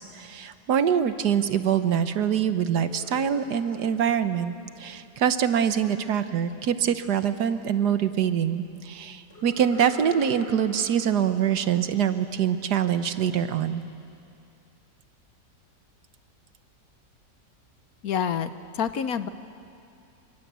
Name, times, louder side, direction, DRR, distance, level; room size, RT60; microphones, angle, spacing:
voice 1, 0.0-13.8, right 8 dB, 70° right, 11 dB, 1.5 m, -24 dB
sound 1, 2.7-5.6 9.3-13.0, left 2 dB, 35° left, 4.8 m, -47 dB
voice 2, 18.0-19.3, left 7 dB, 65° left, 11 dB, 1.2 m, -28 dB
27.5 x 24.5 x 8.2 m, 2.6 s
omnidirectional pair, 1.9 m